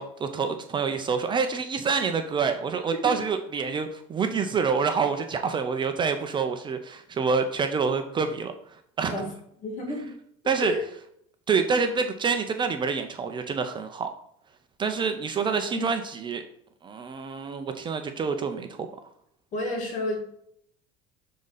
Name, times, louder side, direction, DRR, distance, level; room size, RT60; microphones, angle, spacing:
voice 1, 0.0-8.5 9.0-9.2 10.5-10.7 11.5-14.1 14.8-16.4 16.8-18.9, right 5 dB, 30° right, 7 dB, 0.6 m, -27 dB
voice 2, 9.6-10.1 10.6-10.8 15.7-15.8 19.5-20.2, left 1 dB, 45° left, 0 dB, 2.3 m, -30 dB
7.0 x 3.8 x 4.0 m, 0.69 s
supercardioid pair, 115°, 17 cm